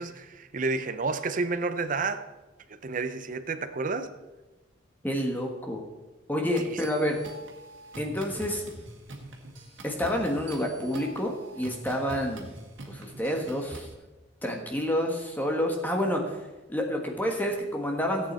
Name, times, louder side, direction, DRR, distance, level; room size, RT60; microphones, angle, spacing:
voice 1, 0.0-2.3 2.8-4.1, right 3 dB, 45° right, 0.6 m, -30 dB
voice 2, 5.0-5.8 6.3-7.2 8.0-8.6 9.8-12.5 12.8-13.9 14.4-16.4 16.7-18.3, equal, 10° left, 1.2 m, -29 dB
sound 1, 6.6-13.9, right 1 dB, 75° right, 1.8 m, -44 dB
14.5 x 8.5 x 4.3 m
head